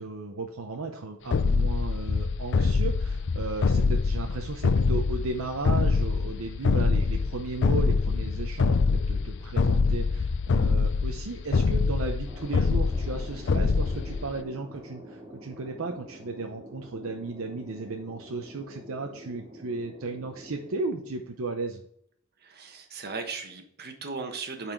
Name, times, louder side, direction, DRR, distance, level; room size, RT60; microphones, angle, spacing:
voice 1, 0.0-21.8, right 3 dB, 70° right, 3 dB, 0.8 m, -35 dB
sound 1, 1.3-14.4, left 4 dB, 60° left, 0.4 m, -25 dB
Thunder, 12.2-21.6, equal, 20° right, 2.6 m, -47 dB
voice 2, 22.4-24.7, right 4 dB, 50° right, 5 dB, 1.2 m, -37 dB
8.9 x 4.3 x 4.5 m, 0.68 s
head